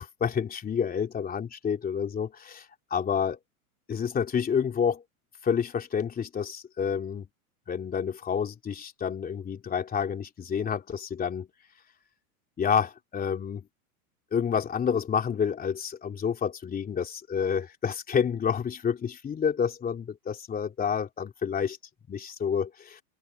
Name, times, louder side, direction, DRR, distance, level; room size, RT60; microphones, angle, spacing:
voice 1, 0.0-2.6 2.9-3.4 3.9-5.0 5.4-7.3 7.7-11.5 12.6-13.7 14.3-21.8 22.1-23.0, left 7 dB, 20° left, 3.3 m, -29 dB
supercardioid pair, 135°, 44 cm